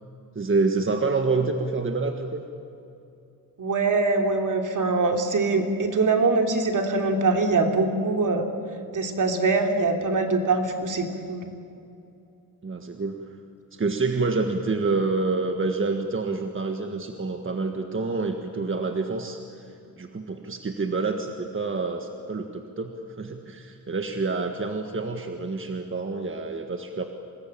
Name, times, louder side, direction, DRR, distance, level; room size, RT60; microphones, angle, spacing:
voice 1, 0.3-2.4 12.6-13.3 13.7-19.7 20.0-27.1, right 3 dB, 35° right, 5 dB, 1.6 m, -27 dB
voice 2, 3.6-8.4 8.9-11.4, right 3 dB, 60° right, 4 dB, 3.0 m, -23 dB
26.0 x 20.5 x 8.9 m, 2.6 s
cardioid pair, 90°, 36 cm